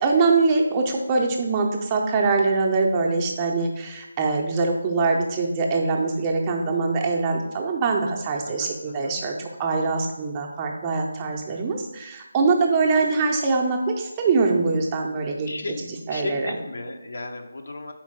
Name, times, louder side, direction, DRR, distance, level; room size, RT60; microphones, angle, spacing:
voice 1, 0.0-15.5 15.9-16.5, right 4 dB, 20° right, 0 dB, 0.7 m, -23 dB
voice 2, 8.4-9.2 15.5-17.9, left 2 dB, 55° left, 4 dB, 0.8 m, -35 dB
4.5 x 4.3 x 5.8 m, 0.94 s
figure-of-eight pair, 155°, 0 cm